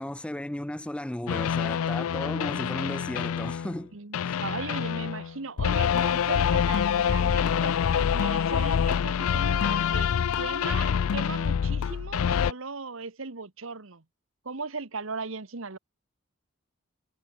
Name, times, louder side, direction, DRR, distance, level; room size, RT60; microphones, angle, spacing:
voice 1, 0.0-3.9 4.2-4.4, left 1 dB, 5° left, 0.3 m, -35 dB
sound 1, 1.3-3.8 4.1-12.5, left 7 dB, 90° left, 0.4 m, -26 dB
voice 2, 3.9-14.0 14.4-15.8, right 4 dB, 70° right, 1.4 m, -38 dB
head